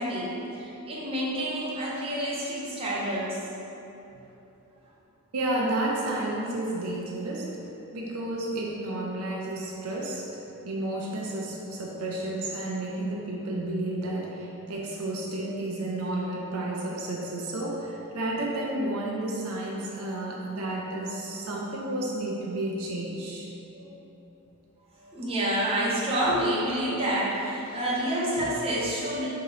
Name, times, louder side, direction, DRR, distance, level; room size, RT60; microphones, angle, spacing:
voice 1, 0.0-3.4 23.7-23.9 25.0-29.3, right 1 dB, 25° right, -7 dB, 0.8 m, -28 dB
voice 2, 5.3-10.3 10.6-23.5, right 1 dB, 70° right, -2 dB, 0.5 m, -31 dB
3.7 x 2.9 x 4.8 m, 3.0 s
head